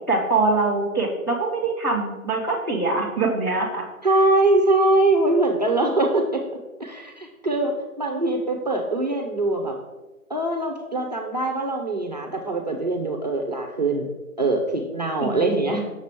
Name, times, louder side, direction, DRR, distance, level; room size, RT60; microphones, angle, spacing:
voice 1, 0.1-3.8 15.2-15.5, right 3 dB, 15° left, -9 dB, 0.6 m, -23 dB
voice 2, 4.0-6.4 6.8-9.8 10.3-14.1 14.4-15.8, right 2 dB, 30° right, 2 dB, 0.5 m, -22 dB
6.5 x 6.3 x 3.5 m, 1.1 s
figure-of-eight pair, 145°, 43 cm